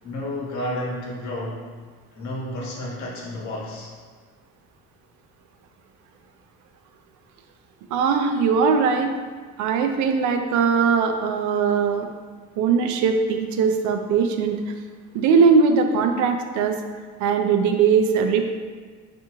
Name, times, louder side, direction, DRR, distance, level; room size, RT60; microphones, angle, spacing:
voice 1, 0.0-1.6 2.1-3.9, left 1 dB, 65° left, -3 dB, 1.0 m, -31 dB
voice 2, 7.9-9.1 9.6-12.1 12.6-14.6 15.1-16.8 17.2-18.5, right 5 dB, 70° right, 5 dB, 0.4 m, -20 dB
3.5 x 2.6 x 2.9 m, 1.5 s
cardioid pair, 105°, 31 cm